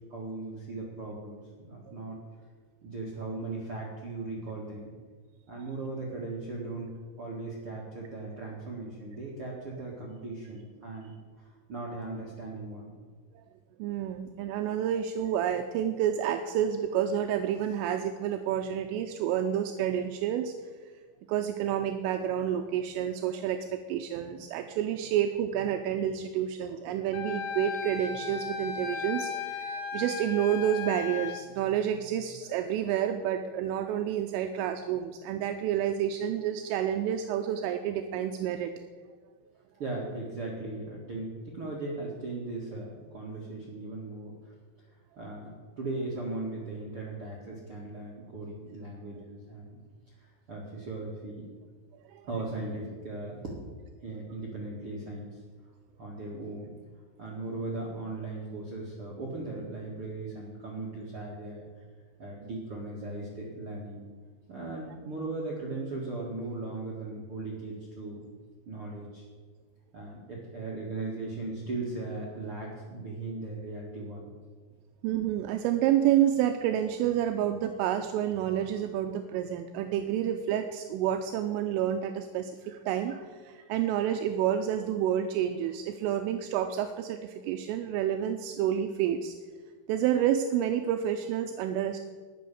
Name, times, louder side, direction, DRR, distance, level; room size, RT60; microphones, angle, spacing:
voice 1, 0.1-2.2 2.8-4.9 5.5-6.9 7.2-13.0 39.8-44.5 45.2-49.8 50.1-51.4 52.3-53.6 54.0-55.4 56.0-56.7 57.2-61.6 62.2-64.0 64.5-68.2 68.6-69.2 69.9-74.3, right 2 dB, 60° right, -4 dB, 1.4 m, -38 dB
voice 2, 13.8-20.5 21.3-38.7 52.1-52.3 75.0-89.4 89.9-92.0, right 10 dB, 80° right, 6 dB, 3.1 m, -29 dB
Wind instrument woodwind instrument, 27.1-31.4, left 6 dB, 80° left, 3.8 m, -36 dB
19.5 x 6.6 x 7.0 m, 1.5 s
omnidirectional pair, 5.9 m